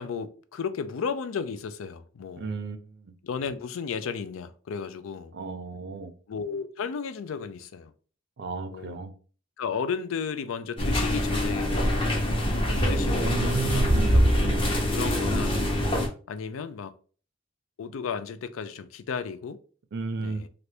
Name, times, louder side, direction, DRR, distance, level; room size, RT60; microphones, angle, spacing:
voice 1, 0.0-2.5 3.2-5.3 6.3-7.9 8.7-9.0 9.6-12.0 12.6-14.5 14.9-15.7 16.3-16.9 17.8-19.6 20.2-20.5, left 6 dB, 90° left, 0.4 m, -34 dB
voice 2, 2.4-3.1 5.3-6.1 8.4-9.1 13.2-14.7 19.9-20.4, right 4 dB, 60° right, 0.5 m, -33 dB
sound 1, 10.8-16.1, equal, 25° left, 0.7 m, -24 dB
3.3 x 2.5 x 2.7 m
head